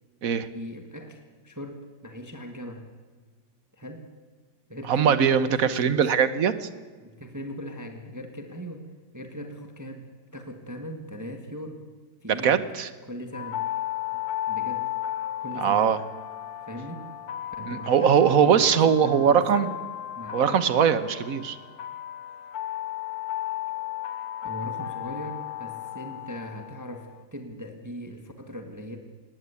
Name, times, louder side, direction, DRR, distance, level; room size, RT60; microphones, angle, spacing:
voice 1, 0.5-2.9 3.8-4.1 4.7-5.2 5.5-6.1 7.0-11.8 12.2-12.6 13.1-13.6 14.5-14.9 15.4-15.9 16.6-17.1 17.5-19.8 20.1-20.7 24.4-29.0, equal, 10° right, 5 dB, 1.5 m, -39 dB
voice 2, 4.9-6.7 12.4-12.9 15.6-16.0 17.7-19.7 20.3-21.6, right 7 dB, 55° right, 13 dB, 1.3 m, -21 dB
sound 1, 13.3-27.2, left 12 dB, 60° left, 1.3 m, -35 dB
20.0 x 18.0 x 8.5 m, 1.5 s
omnidirectional pair, 2.0 m